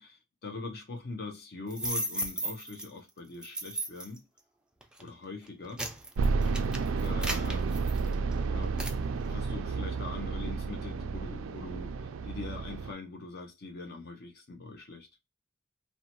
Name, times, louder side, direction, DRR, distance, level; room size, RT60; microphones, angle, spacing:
voice 1, 0.0-4.2 5.0-5.8 7.0-7.7 8.5-8.8 9.2-15.1, left 3 dB, 50° left, 0.6 m, -42 dB
sound 1, 1.7-2.9 3.4-4.2 4.8-5.0 5.5-8.3 8.8-9.0, right 1 dB, 5° right, 0.4 m, -35 dB
sound 2, 6.2-12.9, right 4 dB, 80° right, 0.3 m, -31 dB
2.7 x 2.1 x 2.8 m
head